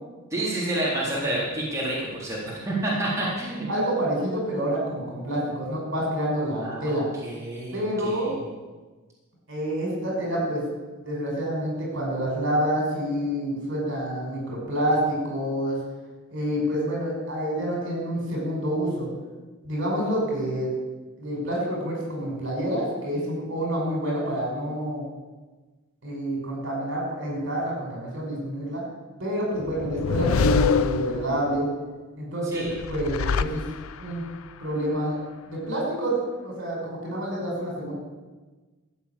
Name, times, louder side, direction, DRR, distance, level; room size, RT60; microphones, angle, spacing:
voice 1, 0.3-3.7 6.6-7.0 7.2-8.3 32.5-32.7, right 1 dB, 15° right, -7 dB, 3.7 m, -29 dB
voice 2, 3.7-7.1 7.7-8.3 9.5-10.6 11.0-15.8 16.3-19.1 19.6-20.7 21.2-25.0 26.0-28.8 29.2-31.7 32.2-33.6 34.0-34.2 34.6-35.2 35.5-36.2 36.4-37.9, equal, 60° right, -1 dB, 5.8 m, -28 dB
sound 1, 29.6-31.6 32.7-34.2, left 5 dB, 90° left, 0.5 m, -25 dB
15.0 x 7.2 x 8.6 m, 1.3 s
head